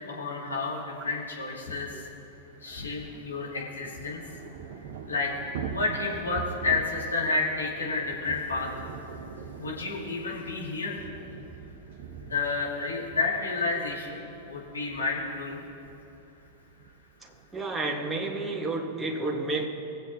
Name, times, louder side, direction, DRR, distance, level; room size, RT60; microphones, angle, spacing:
voice 1, 0.1-2.1 2.6-4.2 5.0-5.4 5.7-8.7 9.6-11.1 12.2-15.6, left 3 dB, 80° left, -4 dB, 2.4 m, -30 dB
Thunder / Rain, 1.3-1.4 1.6-1.7 2.0-17.9, right 6 dB, 60° right, 0.8 m, -43 dB
voice 2, 17.2-19.7, right 2 dB, 10° right, 0 dB, 1.5 m, -31 dB
22.0 x 7.6 x 2.8 m, 2.9 s
figure-of-eight pair, 95°, 0 cm